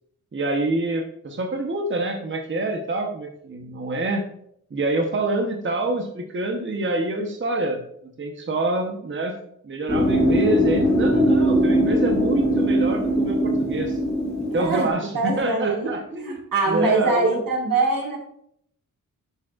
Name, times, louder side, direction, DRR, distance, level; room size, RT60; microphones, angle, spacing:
voice 1, 0.3-4.2 4.7-7.8 8.2-9.3 9.6-14.0 14.5-17.4, right 2 dB, 35° right, 3 dB, 0.9 m, -26 dB
sound 1, 9.9-14.9, equal, 5° left, 2.5 m, -21 dB
voice 2, 14.5-18.2, right 3 dB, 80° right, 1 dB, 1.8 m, -23 dB
11.0 x 6.3 x 2.4 m, 0.69 s
wide cardioid pair, 110°, 34 cm